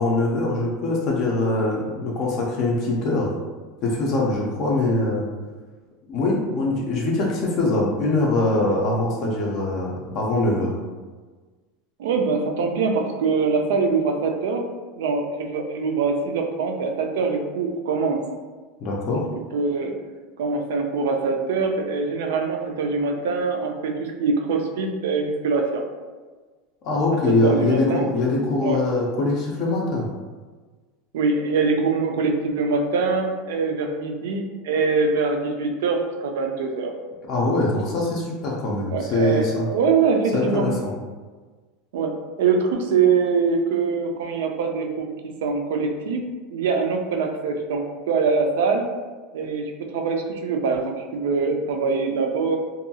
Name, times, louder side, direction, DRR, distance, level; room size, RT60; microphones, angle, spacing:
voice 1, 0.0-3.3 3.8-5.2 6.1-10.7 18.8-19.2 26.8-30.1 37.3-39.7 40.3-40.9, left 2 dB, 35° left, -3 dB, 0.4 m, -23 dB
voice 2, 12.0-14.6 15.0-18.2 19.1-19.2 19.5-19.9 20.4-25.8 27.4-28.1 28.6-28.8 31.1-36.9 38.9-40.7 41.9-45.1 45.4-46.2 46.5-48.9 49.3-52.6, right 4 dB, 85° right, 3 dB, 0.4 m, -23 dB
2.6 x 2.2 x 2.7 m, 1.4 s
supercardioid pair, 175°, 0 cm